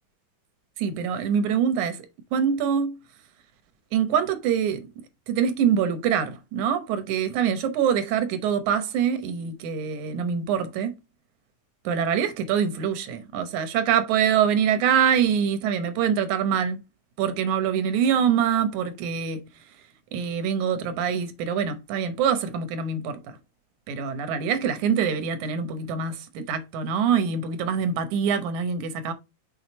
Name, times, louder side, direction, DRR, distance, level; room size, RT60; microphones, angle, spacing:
voice 1, 0.8-2.1 2.3-3.0 3.9-4.9 5.3-11.0 11.8-16.8 17.2-19.4 20.1-23.4 23.9-29.1, right 7 dB, 85° right, 2.4 m, -24 dB
6.4 x 4.6 x 4.1 m
omnidirectional pair, 3.3 m